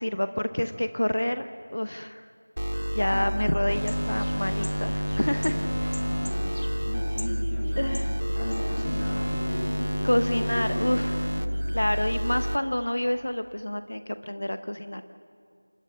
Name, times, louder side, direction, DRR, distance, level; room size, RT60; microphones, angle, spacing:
voice 1, 0.0-2.3 2.9-5.6 7.8-8.1 10.0-11.2 11.7-15.0, left 1 dB, 40° left, 10 dB, 0.7 m, -28 dB
sound 1, 2.6-12.6, equal, 70° right, 1.1 m, -29 dB
sound 2, 3.6-9.3, equal, 75° left, 1.7 m, -40 dB
voice 2, 6.0-11.6, left 1 dB, 5° left, -3 dB, 1.1 m, -37 dB
27.5 x 10.5 x 9.3 m, 2.2 s
figure-of-eight pair, 175°, 0 cm